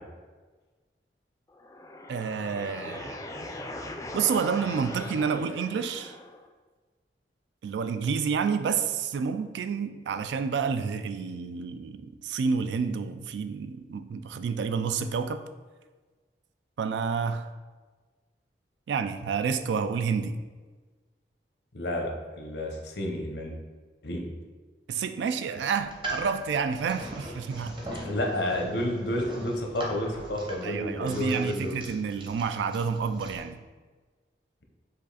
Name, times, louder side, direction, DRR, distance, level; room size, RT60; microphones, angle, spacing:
sound 1, 1.5-6.5, left 1 dB, 20° left, 0.3 m, -40 dB
voice 1, 2.1-3.2 3.4-3.6 4.1-6.2 7.6-15.4 16.8-17.5 18.9-20.4 24.9-27.8 30.6-33.6, right 6 dB, 85° right, 10 dB, 0.3 m, -29 dB
voice 2, 21.7-23.5 24.0-24.2 28.0-31.7, left 1 dB, 80° left, 1 dB, 0.8 m, -30 dB
sound 2, 25.8-33.4, right 1 dB, 30° right, 0.7 m, -40 dB
5.0 x 2.4 x 4.0 m, 1.3 s
head